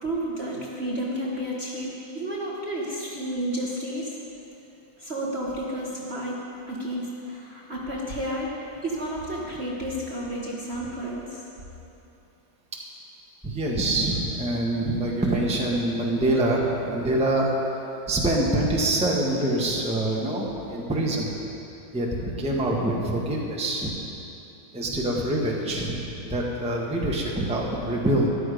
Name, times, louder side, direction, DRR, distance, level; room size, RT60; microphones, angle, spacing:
voice 1, 0.0-4.2 5.0-6.4 6.7-8.5 8.8-11.4, right 1 dB, 35° right, -4 dB, 1.3 m, -31 dB
voice 2, 13.4-17.5 18.1-21.3 21.9-23.9 24.7-26.0 26.3-28.3, right 1 dB, 5° right, -3 dB, 1.2 m, -25 dB
13.5 x 11.5 x 5.2 m, 2.9 s
omnidirectional pair, 2.2 m